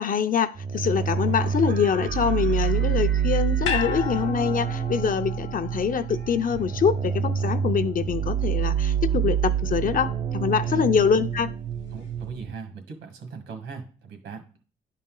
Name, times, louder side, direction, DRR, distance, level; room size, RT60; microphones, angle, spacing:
voice 1, 0.0-11.5, left 7 dB, 45° left, 0.5 m, -24 dB
sound 1, 0.6-12.5, right 8 dB, 30° right, 0.4 m, -27 dB
sound 2, 0.7-7.5, right 5 dB, 55° right, 0.8 m, -47 dB
sound 3, 3.6-8.0 8.3-8.4, left 8 dB, 70° left, 0.9 m, -35 dB
voice 2, 11.9-14.4, right 5 dB, 80° right, 1.7 m, -39 dB
10.0 x 4.1 x 3.8 m
cardioid pair, 90°, 20 cm